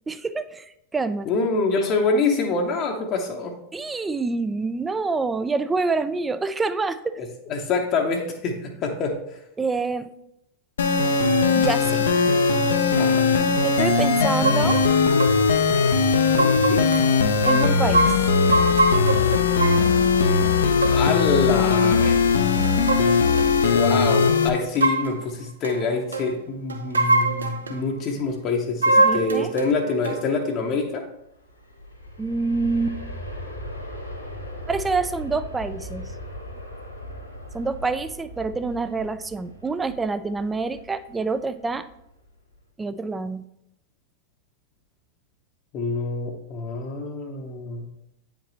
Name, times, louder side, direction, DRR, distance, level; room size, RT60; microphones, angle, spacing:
voice 1, 0.1-1.3 3.7-7.2 9.6-10.1 11.5-12.1 13.6-14.8 17.5-18.1 29.0-29.5 32.2-33.0 34.7-36.1 37.5-41.9 42.8-43.4, right 4 dB, 15° right, 12 dB, 0.4 m, -26 dB
voice 2, 1.3-3.5 7.2-9.2 13.0-13.3 16.3-16.8 20.9-22.2 23.7-31.1 45.7-47.9, left 3 dB, 35° left, 2 dB, 0.8 m, -26 dB
sound 1, 10.8-24.5, left 5 dB, 65° left, 0.6 m, -19 dB
sound 2, 14.4-14.9 15.2-15.4 15.7-15.8 16.4-17.0 17.4-19.9 20.8-21.0 21.5-21.7 22.0-22.2 22.6-23.8 24.5-25.2 25.6-25.8 26.1-26.3 26.7-27.8 28.8-29.7 30.0-30.2, right 2 dB, 75° right, 0.6 m, -23 dB
Aircraft, 31.3-42.1 42.5-42.6, left 1 dB, 85° left, 1.5 m, -38 dB
8.8 x 5.2 x 3.0 m, 0.81 s
figure-of-eight pair, 90°, 0 cm